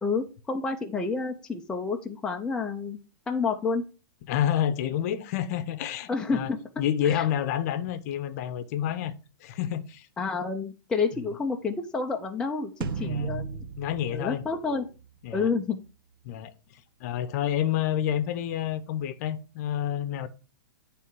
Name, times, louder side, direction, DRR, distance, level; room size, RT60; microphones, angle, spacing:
voice 1, 0.0-3.0 3.3-3.8 6.1-6.6 7.0-7.2 10.2-13.6 14.1-14.9 15.3-15.8, left 4 dB, 5° left, 0.5 m, -29 dB
voice 2, 4.3-6.5 6.8-9.1 9.4-10.1 13.0-13.3 13.8-14.4 15.2-15.5 16.2-16.5 17.0-20.3, left 10 dB, 45° left, 0.7 m, -29 dB
sound 1, 12.8-15.3, right 5 dB, 70° right, 0.7 m, -35 dB
9.6 x 3.4 x 4.6 m
hypercardioid pair, 150°, 12 cm